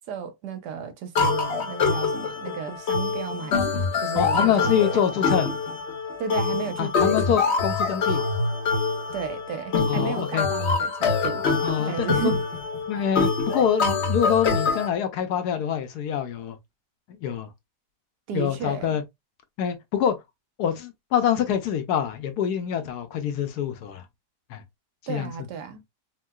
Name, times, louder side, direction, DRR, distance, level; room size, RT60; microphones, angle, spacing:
voice 1, 0.1-4.8 6.2-7.4 9.1-11.4 11.9-12.4 18.3-19.0 25.1-25.8, right 7 dB, 70° right, 1.2 m, -33 dB
sound 1, 1.1-14.9, left 4 dB, 50° left, 0.8 m, -25 dB
voice 2, 4.1-5.5 6.8-8.2 9.8-10.5 11.6-12.3 12.9-16.6 17.1-17.5 18.3-19.0 19.6-20.2 20.6-24.0 24.5-24.6 25.1-25.3, left 8 dB, 75° left, 1.1 m, -25 dB
4.5 x 2.2 x 2.2 m
omnidirectional pair, 1.9 m